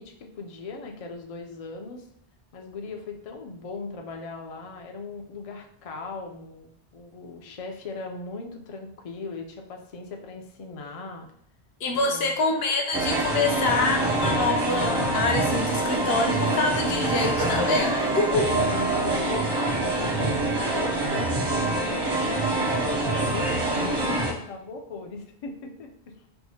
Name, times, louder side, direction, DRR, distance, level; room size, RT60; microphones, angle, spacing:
voice 1, 0.0-2.1 2.5-11.3 11.9-12.3 18.3-26.1, left 3 dB, 50° left, 3 dB, 0.4 m, -38 dB
voice 2, 11.8-18.4, left 3 dB, 75° left, 3 dB, 0.8 m, -26 dB
sound 1, 12.9-24.3, right 2 dB, 40° right, 0.3 m, -25 dB
4.5 x 2.0 x 2.7 m, 0.68 s
omnidirectional pair, 1.1 m